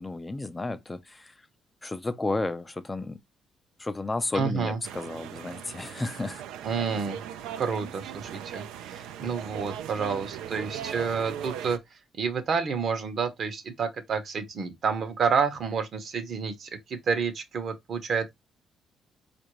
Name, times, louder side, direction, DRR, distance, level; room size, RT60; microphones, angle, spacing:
voice 1, 0.0-1.4 1.8-3.2 3.8-6.4, left 2 dB, 25° left, 0.4 m, -32 dB
voice 2, 4.3-4.8 6.6-7.2 7.6-11.8 12.2-18.3, right 5 dB, 60° right, 0.9 m, -29 dB
sound 1, 4.8-11.8, right 10 dB, 85° right, 0.3 m, -39 dB
4.3 x 2.5 x 2.9 m
supercardioid pair, 60°, 0 cm